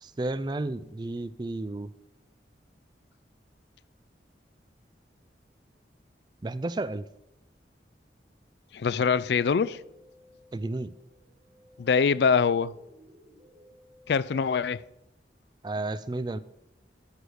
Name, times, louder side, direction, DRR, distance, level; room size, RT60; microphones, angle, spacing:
voice 1, 0.0-1.9 6.4-7.1 10.5-10.9 15.6-16.4, right 2 dB, 25° right, 0.3 m, -32 dB
voice 2, 8.7-9.8 11.8-12.8 14.1-14.8, left 6 dB, 70° left, 0.4 m, -24 dB
Musical instrument, 8.9-14.9, left 1 dB, 40° right, 2.8 m, -58 dB
13.0 x 5.0 x 6.4 m
head